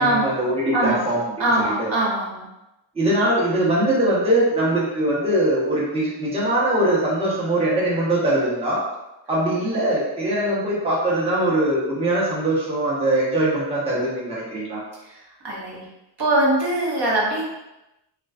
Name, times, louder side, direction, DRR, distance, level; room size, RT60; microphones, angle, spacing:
voice 1, 0.0-1.9 2.9-8.8 9.3-14.8, right 1 dB, 15° right, -7 dB, 0.7 m, -22 dB
voice 2, 0.7-1.0 1.4-2.5 15.0-15.2 15.4-15.9 16.2-17.4, right 1 dB, 60° right, -6 dB, 0.9 m, -22 dB
2.3 x 2.3 x 2.3 m, 0.94 s
wide cardioid pair, 95°, 45 cm